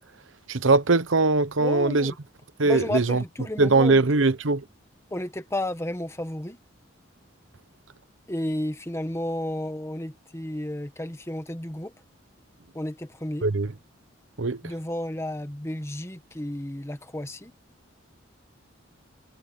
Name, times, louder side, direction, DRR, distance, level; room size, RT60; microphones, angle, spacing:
voice 1, 0.5-2.1 2.6-3.2 3.6-4.6 13.4-13.7 14.4-14.6, right 3 dB, 80° right, 1.0 m, -21 dB
voice 2, 1.6-2.2 2.6-4.0 5.1-6.6 8.3-11.9 12.7-13.5 14.6-17.5, left 1 dB, 15° left, 1.4 m, -32 dB
head